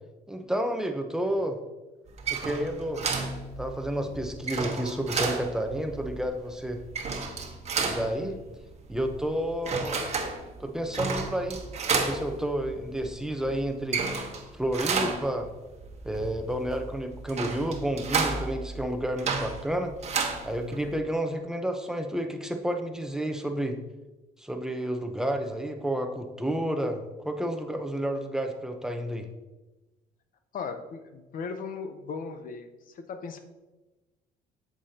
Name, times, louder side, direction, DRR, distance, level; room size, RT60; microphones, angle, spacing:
voice 1, 0.3-1.6 2.3-3.0 3.6-6.8 7.8-8.4 8.9-10.0 10.6-11.6 11.9-14.0 14.5-15.5 16.0-19.9 20.4-23.8 24.4-29.3, right 1 dB, 5° right, 5 dB, 0.8 m, -30 dB
sound 1, 2.1-21.0, right 4 dB, 40° right, 1.2 m, -32 dB
voice 2, 8.0-8.3 9.8-9.9 30.5-32.7 32.9-33.4, left 5 dB, 55° left, 7 dB, 0.8 m, -38 dB
8.2 x 7.5 x 2.8 m, 1.1 s
cardioid pair, 110°, 17 cm